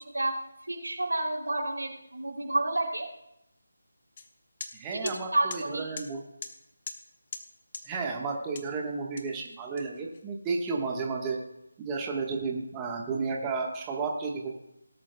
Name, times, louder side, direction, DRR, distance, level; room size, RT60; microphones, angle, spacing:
voice 1, 0.1-3.1 4.9-5.9, right 2 dB, 85° right, 1 dB, 3.0 m, -30 dB
sound 1, 4.2-4.3 4.6-4.7 5.1-5.2 5.5-5.6 6.0-6.1 6.4-6.5 6.9-7.0 7.3-7.4 7.7-7.8 8.6-8.7 9.2-10.2, left 5 dB, 40° left, 1.0 m, -40 dB
voice 2, 4.7-6.2 7.8-11.4 11.8-14.5, right 4 dB, 15° right, 0 dB, 1.3 m, -32 dB
18.0 x 11.0 x 2.2 m, 0.82 s
figure-of-eight pair, 160°, 0 cm